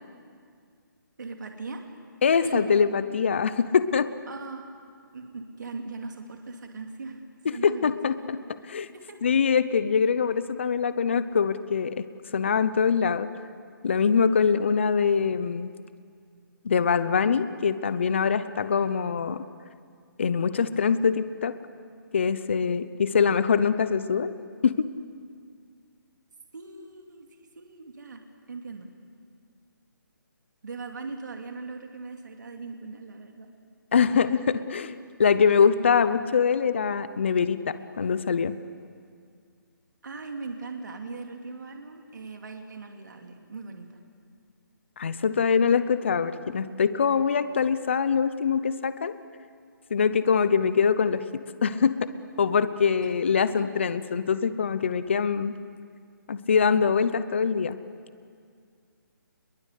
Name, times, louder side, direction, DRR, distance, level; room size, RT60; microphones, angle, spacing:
voice 1, 1.2-1.8 2.4-2.6 4.3-4.7 5.1-7.2 7.5-8.3 8.9-9.3 26.5-28.2 28.5-28.9 30.6-33.5 40.0-44.0 53.0-53.1 53.5-53.7, right 4 dB, 60° right, 3 dB, 2.6 m, -39 dB
voice 2, 2.2-4.1 7.6-8.4 8.7-8.9 9.2-12.0 12.3-13.3 13.8-15.7 16.6-19.4 20.2-21.5 22.1-24.3 24.6-24.9 33.9-38.5 45.0-49.2 49.9-52.0 52.4-55.5 56.3-57.8, left 6 dB, 35° left, 13 dB, 0.7 m, -23 dB
27.5 x 22.0 x 8.3 m, 2.2 s
hypercardioid pair, 175°, 11 cm